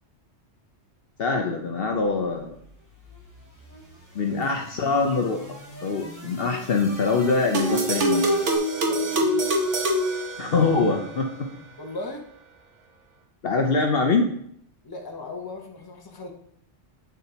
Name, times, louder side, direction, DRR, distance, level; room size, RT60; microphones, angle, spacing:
voice 1, 1.2-2.5 4.1-5.4 5.8-8.3 10.4-11.5 13.4-14.3, left 4 dB, 60° left, 3 dB, 0.8 m, -24 dB
sound 1, 2.2-8.6, equal, 15° right, 2.1 m, -42 dB
sound 2, 7.5-11.0, right 1 dB, 75° right, 1.4 m, -24 dB
voice 2, 8.7-9.4 11.8-12.2 14.8-16.3, left 2 dB, 20° left, 1 dB, 0.9 m, -37 dB
8.2 x 7.1 x 2.8 m, 0.68 s
omnidirectional pair, 1.2 m